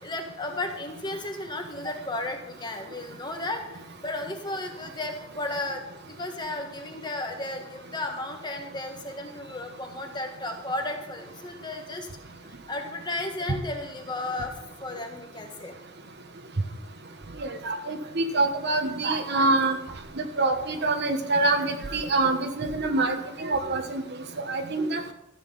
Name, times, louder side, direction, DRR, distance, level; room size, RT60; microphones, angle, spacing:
voice 1, 0.0-12.1 12.4-14.5 14.8-15.8, left 2 dB, 20° left, 3 dB, 1.5 m, -34 dB
voice 2, 17.4-19.8 20.2-24.0 24.5-25.0, right 2 dB, 55° right, 7 dB, 1.2 m, -25 dB
13.5 x 8.2 x 5.5 m, 0.87 s
head